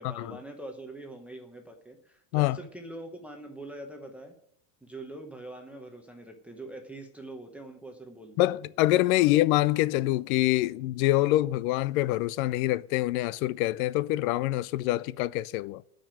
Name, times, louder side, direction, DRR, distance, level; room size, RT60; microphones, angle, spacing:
voice 1, 0.0-4.4 4.8-8.5 9.2-9.3, right 1 dB, 5° right, 0.9 m, -43 dB
voice 2, 8.4-15.8, left 16 dB, 65° left, 0.5 m, -25 dB
13.5 x 5.2 x 9.0 m
supercardioid pair, 150°, 46 cm